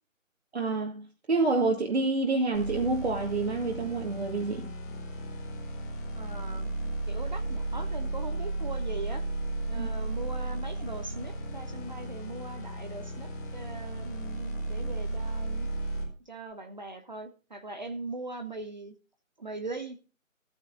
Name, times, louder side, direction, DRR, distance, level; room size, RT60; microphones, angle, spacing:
voice 1, 0.5-4.7 9.8-9.9, right 3 dB, 50° right, 2.4 m, -28 dB
sound 1, 2.5-16.1, right 2 dB, 15° left, 1.9 m, -34 dB
voice 2, 6.2-6.7 7.1-9.2 9.7-15.7 16.2-18.9 19.4-20.0, right 3 dB, 35° right, 1.0 m, -40 dB
13.5 x 9.9 x 3.8 m
figure-of-eight pair, 160°, 41 cm